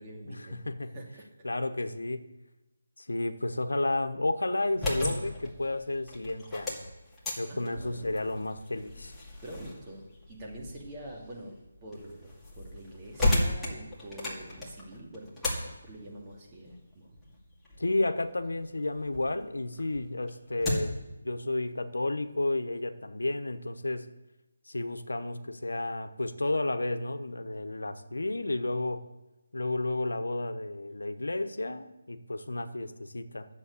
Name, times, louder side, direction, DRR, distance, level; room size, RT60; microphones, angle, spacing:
voice 1, 0.0-1.3 7.4-8.1 9.4-15.4 15.6-17.2, right 1 dB, 20° right, -1 dB, 2.4 m, -46 dB
voice 2, 1.4-2.3 3.0-6.9 7.4-9.1 17.8-24.1 24.7-29.0 29.5-33.5, left 2 dB, 90° left, 9 dB, 1.0 m, -32 dB
sound 1, 4.6-19.3 19.7-21.1, left 1 dB, 5° left, 2.3 m, -35 dB
11.0 x 7.6 x 8.4 m, 1.0 s
figure-of-eight pair, 160°, 0 cm